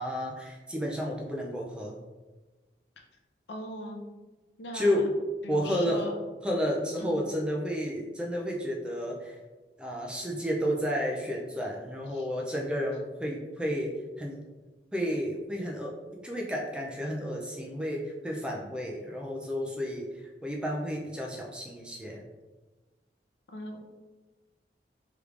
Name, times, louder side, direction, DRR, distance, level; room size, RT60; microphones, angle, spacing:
voice 1, 0.0-2.0 4.7-5.1 5.5-6.1 6.4-9.4 9.8-14.4 14.9-15.9 16.2-22.2, equal, 5° right, -1 dB, 0.3 m, -31 dB
voice 2, 3.5-4.0 4.6-5.0 5.4-6.1 7.0-7.2 12.1-12.3 23.5-23.8, left 1 dB, 85° left, 2 dB, 0.6 m, -39 dB
3.4 x 3.1 x 2.4 m, 1.2 s
head